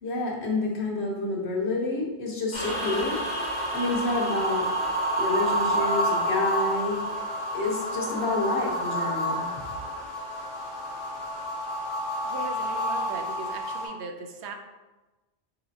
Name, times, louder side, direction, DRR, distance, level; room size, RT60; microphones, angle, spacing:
voice 1, 0.0-3.2 3.7-4.7 5.2-7.0 7.5-9.5, left 2 dB, 80° left, -2 dB, 1.2 m, -28 dB
sound 1, 2.5-13.9, equal, 45° left, 1.1 m, -29 dB
voice 2, 12.2-14.5, right 3 dB, 90° right, 4 dB, 0.9 m, -38 dB
4.1 x 4.1 x 2.6 m, 1.1 s
omnidirectional pair, 1.1 m